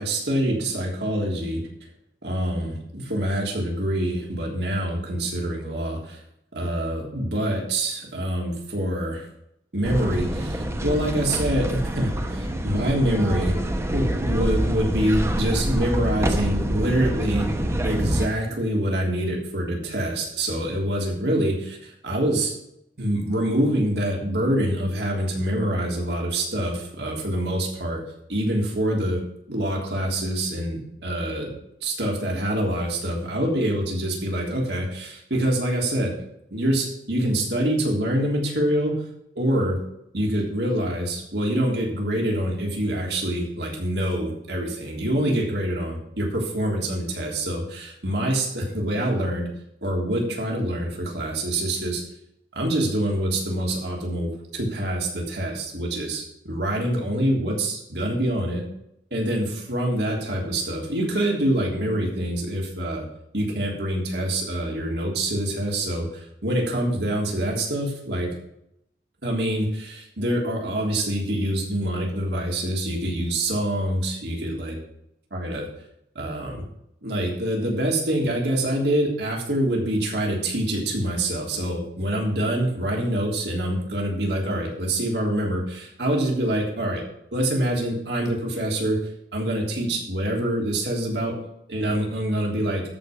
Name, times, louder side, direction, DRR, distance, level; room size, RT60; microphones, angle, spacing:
voice 1, 0.0-1.6 2.2-6.2 6.5-9.3 9.7-13.6 13.9-17.5 17.8-22.5 23.0-28.0 28.3-31.5 31.8-36.1 36.5-38.9 39.3-39.8 40.1-49.5 49.8-52.0 52.5-58.7 59.1-63.0 63.3-68.3 69.2-74.8 75.3-75.7 76.1-76.6 77.0-87.0 87.3-89.0 89.3-91.3 91.7-92.8, right 1 dB, 70° right, -1 dB, 3.4 m, -25 dB
sound 1, 9.8-18.3, right 1 dB, 15° right, 1.0 m, -26 dB
13.5 x 5.5 x 6.0 m, 0.78 s
head